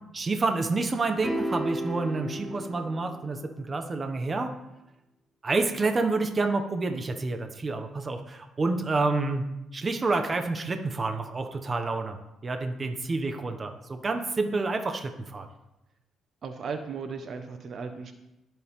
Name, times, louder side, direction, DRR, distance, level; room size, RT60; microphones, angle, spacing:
voice 1, 0.1-4.5 5.4-9.4 9.7-12.2 12.4-15.5, right 3 dB, 35° right, 6 dB, 1.2 m, -28 dB
sound 1, 1.2-3.6, right 1 dB, ahead, 3.3 m, -34 dB
voice 2, 16.4-18.1, right 5 dB, 55° right, 7 dB, 1.4 m, -36 dB
20.5 x 7.8 x 3.8 m, 0.90 s
cardioid pair, 90°, 0 cm